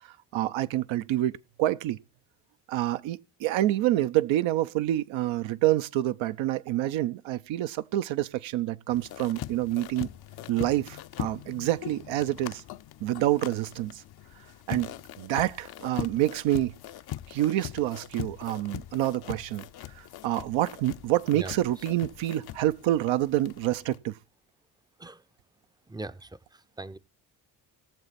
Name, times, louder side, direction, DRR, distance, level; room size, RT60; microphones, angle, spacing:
voice 1, 0.3-2.0 2.7-10.1 10.5-12.6 13.0-14.0 14.7-16.8 17.3-19.7 20.0-24.2, right 14 dB, 70° right, 0.7 m, -27 dB
sound 1, 8.9-24.0, left 13 dB, 50° left, 0.6 m, -41 dB
voice 2, 25.9-27.0, right 2 dB, 10° right, 0.6 m, -40 dB
18.0 x 7.1 x 4.2 m
hypercardioid pair, 55°, 50 cm